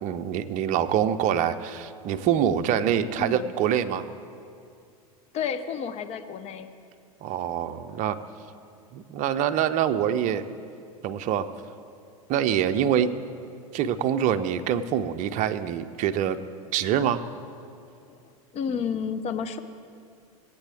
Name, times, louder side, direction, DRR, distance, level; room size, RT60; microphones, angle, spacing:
voice 1, 0.0-4.1 7.2-8.2 8.9-10.4 11.0-11.5 12.3-13.1 13.7-16.4 16.7-17.2, right 9 dB, 45° right, 9 dB, 0.7 m, -25 dB
voice 2, 3.2-3.5 5.3-6.7 18.1-18.2 18.5-19.6, left 7 dB, 35° left, 10 dB, 0.8 m, -31 dB
18.5 x 8.3 x 3.5 m, 2.4 s
hypercardioid pair, 95°, 19 cm